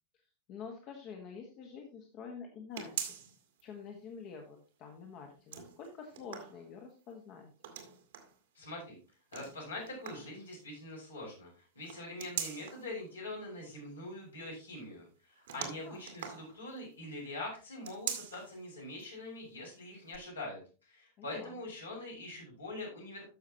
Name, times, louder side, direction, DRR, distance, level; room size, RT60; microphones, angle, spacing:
voice 1, 0.5-3.2 3.6-7.5 15.6-16.0 21.2-21.6, left 6 dB, 40° left, 3 dB, 1.6 m, -47 dB
sound 1, 2.8-3.6 4.0-4.1 5.3-7.0 7.6-8.4 9.3-10.4 11.8-12.9 15.5-16.9 17.8-18.6 19.0-19.1 20.1-20.2, right 9 dB, 60° right, 1.8 m, -42 dB
voice 2, 8.5-9.0 9.3-23.2, left 2 dB, 75° left, -3 dB, 5.1 m, -44 dB
13.0 x 6.4 x 2.9 m, 0.34 s
figure-of-eight pair, 90°, 0 cm